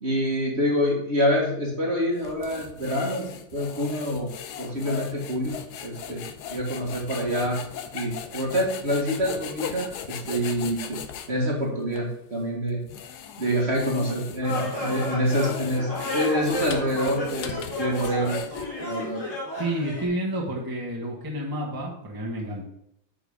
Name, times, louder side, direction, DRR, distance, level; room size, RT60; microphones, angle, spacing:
voice 1, 0.0-4.3 4.6-6.2 6.5-7.6 7.9-11.0 11.3-12.8 13.4-18.4 18.8-19.2, equal, 35° right, -1 dB, 1.8 m, -26 dB
sound 1, 2.2-11.3 11.9-12.0 12.7-18.9, left 8 dB, 65° left, 1.2 m, -38 dB
sound 2, 14.4-20.1, left 1 dB, 40° left, 2.9 m, -32 dB
voice 2, 19.6-22.6, right 1 dB, 10° right, -3 dB, 1.4 m, -30 dB
9.2 x 6.1 x 3.6 m, 0.75 s
omnidirectional pair, 2.0 m